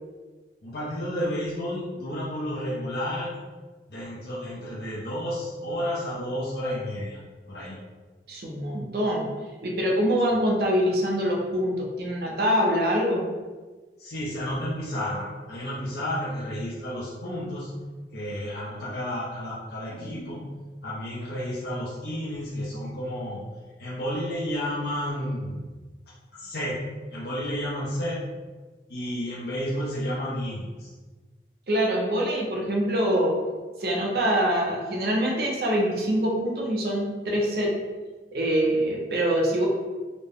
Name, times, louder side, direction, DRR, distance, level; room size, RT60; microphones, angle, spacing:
voice 1, 0.6-3.3 3.9-7.2 7.5-7.8 14.0-17.7 18.1-20.5 20.8-23.4 23.8-25.6 26.3-26.8 27.1-28.2 28.9-30.9 38.7-38.9, equal, 60° left, -7 dB, 0.7 m, -31 dB
voice 2, 8.3-9.3 9.6-13.2 31.7-33.4 33.8-37.7 38.3-39.7, equal, 60° right, -1 dB, 0.6 m, -24 dB
3.9 x 2.1 x 3.4 m, 1.3 s
head